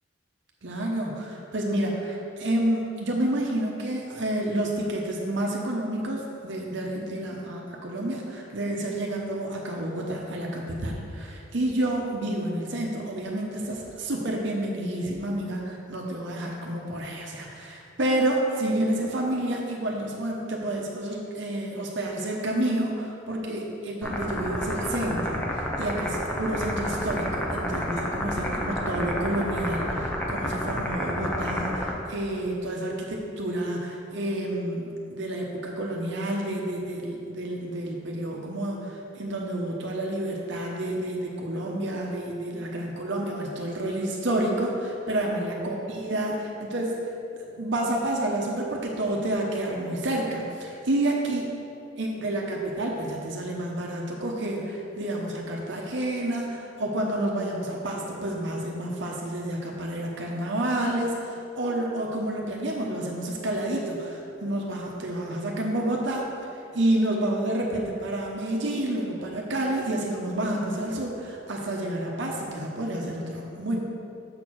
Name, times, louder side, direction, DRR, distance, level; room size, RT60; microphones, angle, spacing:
voice 1, 0.6-47.0 47.3-51.5 52.0-66.3 66.7-73.8, right 1 dB, 60° right, -1 dB, 0.8 m, -29 dB
sound 1, 24.0-31.9, equal, 10° left, 0.7 m, -30 dB
6.8 x 4.4 x 6.2 m, 2.8 s
head